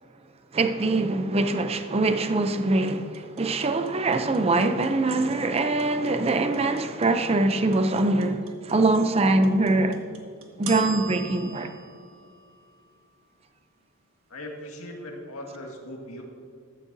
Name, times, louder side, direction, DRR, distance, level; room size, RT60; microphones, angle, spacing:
voice 1, 0.5-10.0 10.6-11.7, right 2 dB, 30° right, 0.5 m, -23 dB
sound 1, 2.9-13.0, right 5 dB, 70° right, 1.6 m, -41 dB
voice 2, 14.3-16.2, left 1 dB, 85° left, 1.9 m, -39 dB
14.5 x 12.5 x 2.7 m
head